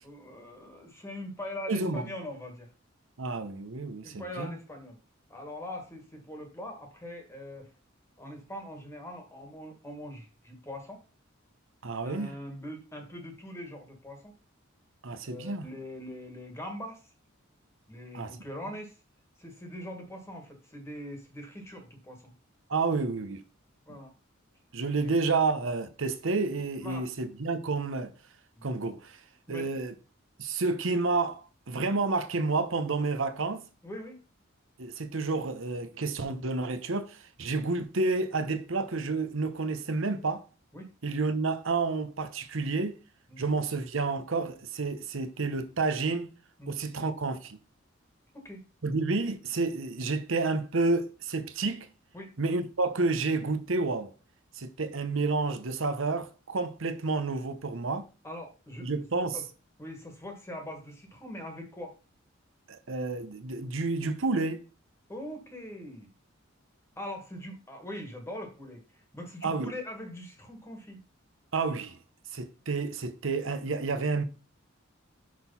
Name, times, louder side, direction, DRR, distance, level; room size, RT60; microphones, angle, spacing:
voice 1, 0.0-2.7 4.0-5.0 5.3-7.7 8.2-11.0 12.0-14.3 15.2-17.1 17.9-19.0 19.4-22.3 23.9-24.1 24.9-25.1 26.8-27.1 28.6-28.7 29.5-29.7 33.8-34.2 40.7-40.9 43.3-43.5 46.6-46.8 48.3-48.6 52.1-52.3 58.2-59.0 59.3-59.5 59.8-61.9 65.1-66.1 67.0-71.0, left 1 dB, 15° left, 1.6 m, -42 dB
voice 2, 1.7-2.0 3.2-4.5 11.8-12.4 15.0-15.7 18.1-18.4 22.7-23.4 23.9-24.0 24.7-28.1 28.6-29.2 29.5-29.9 30.4-33.6 34.8-40.4 41.0-43.0 43.4-46.3 46.7-47.6 48.8-51.9 52.4-54.1 54.6-58.0 58.8-59.4 62.7-64.6 69.4-69.7 71.5-72.0 72.3-74.2, right 3 dB, 70° right, 0.9 m, -30 dB
6.2 x 4.5 x 5.6 m
head